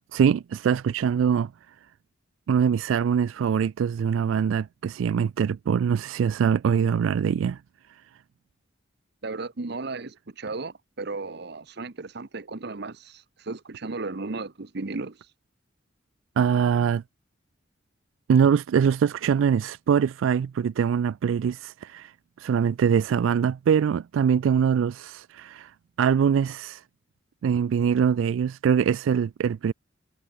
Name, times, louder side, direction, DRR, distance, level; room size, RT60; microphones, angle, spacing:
voice 1, 0.1-1.5 2.5-7.6 16.4-17.0 18.3-22.1 22.4-25.7 26.0-26.8 27.4-29.7, right 7 dB, 90° right, 0.3 m, -23 dB
voice 2, 9.2-15.2, right 3 dB, 60° right, 0.9 m, -35 dB
head